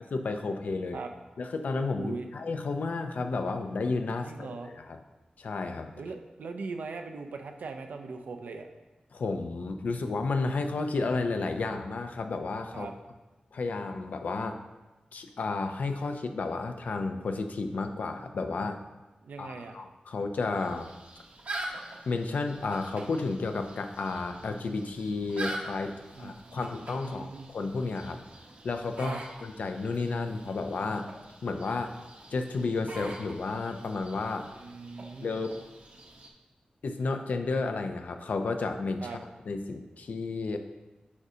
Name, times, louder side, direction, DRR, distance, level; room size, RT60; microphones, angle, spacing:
voice 1, 0.1-1.0 1.4-5.0 5.4-5.9 9.1-12.9 13.5-14.6 15.1-18.8 19.4-20.9 22.1-28.2 28.6-31.1 31.4-32.0 32.3-34.5 35.2-35.6 36.8-39.2 39.5-40.6, left 3 dB, 75° left, 6 dB, 0.5 m, -32 dB
voice 2, 2.0-2.3 4.2-4.7 6.0-8.7 12.7-12.9 19.2-19.8 26.1-26.6 27.0-27.5 29.0-29.2 34.6-35.4 39.0-39.2, right 4 dB, 85° right, 5 dB, 0.6 m, -40 dB
sound 1, 20.5-36.3, right 1 dB, 60° right, 0.9 m, -44 dB
8.3 x 5.0 x 2.7 m, 1.1 s
wide cardioid pair, 80°, 3 cm